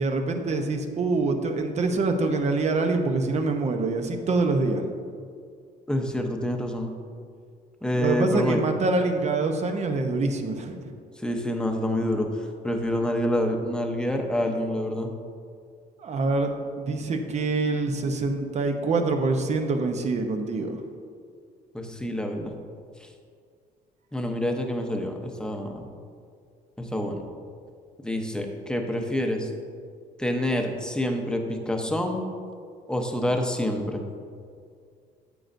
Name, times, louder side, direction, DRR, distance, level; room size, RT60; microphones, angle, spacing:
voice 1, 0.0-4.9 8.0-10.8 16.0-16.5 16.8-20.8, right 3 dB, 40° right, 5 dB, 0.8 m, -25 dB
voice 2, 5.9-6.9 7.8-8.7 11.2-12.3 12.6-15.1 21.7-22.5 23.0-23.1 24.1-25.9 26.8-27.3 28.0-29.5 30.2-32.2 32.9-34.0, left 1 dB, 5° left, 3 dB, 0.8 m, -27 dB
9.5 x 7.6 x 2.6 m, 2.2 s
cardioid pair, 110°, 17 cm